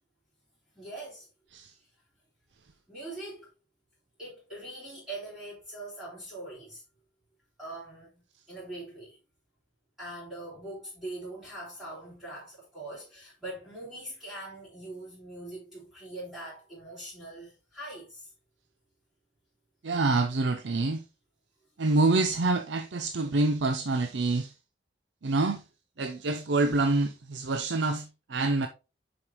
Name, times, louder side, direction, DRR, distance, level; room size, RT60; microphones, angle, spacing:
voice 1, 0.8-1.3 2.9-3.5 4.2-6.8 7.6-8.2 8.5-9.2 10.0-18.3, right 1 dB, 5° right, 3.8 m, -42 dB
voice 2, 19.8-21.0 21.8-24.5 25.2-25.6 26.0-28.7, right 3 dB, 80° right, 0.6 m, -26 dB
7.0 x 5.1 x 3.0 m
head